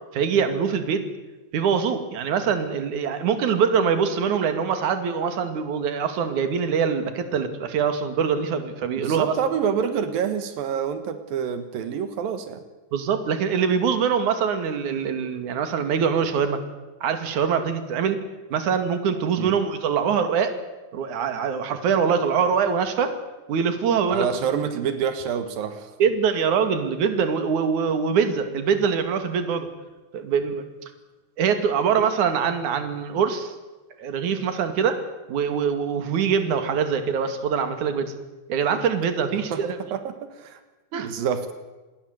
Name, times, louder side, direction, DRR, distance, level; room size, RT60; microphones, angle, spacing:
voice 1, 0.1-1.0 1.5-9.4 12.9-16.6 17.0-18.2 18.5-20.6 20.9-23.1 23.5-24.3 26.0-29.7 30.1-30.6 31.4-33.5 34.0-35.0 35.3-38.1 38.5-39.8 40.9-41.1, right 6 dB, 60° right, 9 dB, 3.7 m, -23 dB
voice 2, 9.0-12.6 19.4-19.5 24.1-25.9 39.3-39.6 39.9-40.6 40.9-41.5, right 7 dB, 90° right, 9 dB, 3.4 m, -27 dB
28.5 x 21.0 x 8.1 m, 1.2 s
omnidirectional pair, 4.0 m